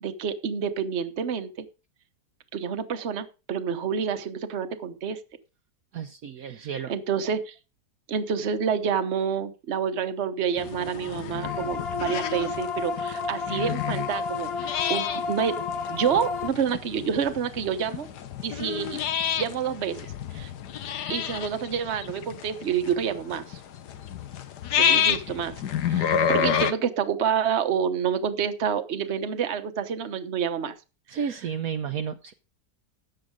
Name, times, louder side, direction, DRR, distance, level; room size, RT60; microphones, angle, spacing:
voice 1, 0.0-1.7 2.5-5.2 6.4-6.5 6.9-7.5 8.1-15.6 15.9-18.1 18.4-19.0 19.4-20.5 21.1-23.6 24.8-25.5 25.9-30.8, right 7 dB, 45° right, 9 dB, 1.2 m, -28 dB
voice 2, 5.9-6.9 31.1-32.3, right 7 dB, 65° right, 6 dB, 1.2 m, -32 dB
sound 1, 10.6-26.7, left 8 dB, 75° left, 1.5 m, -29 dB
sound 2, 11.4-16.5, left 5 dB, 40° left, 1.2 m, -31 dB
13.5 x 9.0 x 3.8 m, 0.31 s
omnidirectional pair, 1.8 m